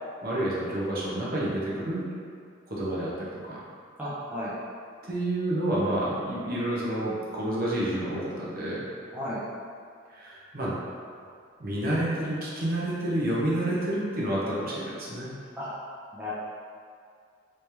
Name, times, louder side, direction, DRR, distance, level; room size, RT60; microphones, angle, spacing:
voice 1, 0.2-2.1 2.7-3.7 5.1-8.9 10.1-10.8 11.6-15.3, right 1 dB, 45° right, -6 dB, 0.7 m, -29 dB
voice 2, 4.0-4.5 9.1-9.4 15.6-15.7 16.1-16.3, left 1 dB, 10° right, -10 dB, 0.6 m, -34 dB
3.2 x 2.9 x 3.3 m, 2.3 s
head